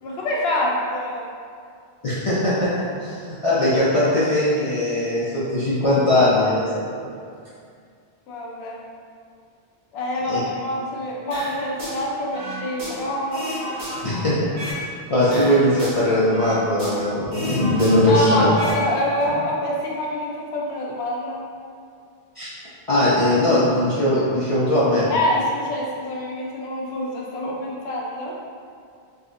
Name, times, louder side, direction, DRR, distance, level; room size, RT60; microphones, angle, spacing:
voice 1, 0.0-1.2 8.3-8.8 9.9-13.6 18.1-21.4 25.1-28.4, left 1 dB, 80° left, -2 dB, 0.8 m, -26 dB
voice 2, 2.0-2.7 3.0-6.8 10.3-10.4 14.0-14.3 15.1-18.5 22.4-22.5 22.9-25.1, left 1 dB, 45° left, -10 dB, 0.4 m, -20 dB
sound 1, 11.3-12.0 12.3-14.8 15.2-17.1 17.3-18.8 19.1-19.3, equal, 70° right, 1.2 m, -32 dB
3.5 x 2.4 x 2.5 m, 2.3 s
omnidirectional pair, 1.1 m